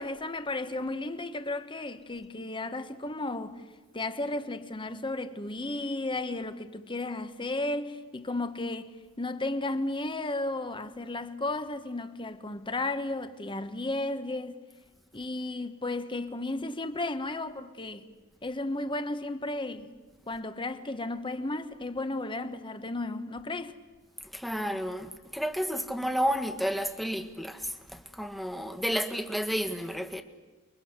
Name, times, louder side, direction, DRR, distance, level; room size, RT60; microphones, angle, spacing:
voice 1, 0.0-3.6 3.9-14.6 15.1-18.0 18.4-19.9 20.3-23.7, left 2 dB, 25° left, 1.4 m, -34 dB
voice 2, 24.3-27.7 28.2-30.2, equal, ahead, 1.6 m, -31 dB
30.0 x 23.0 x 8.1 m
head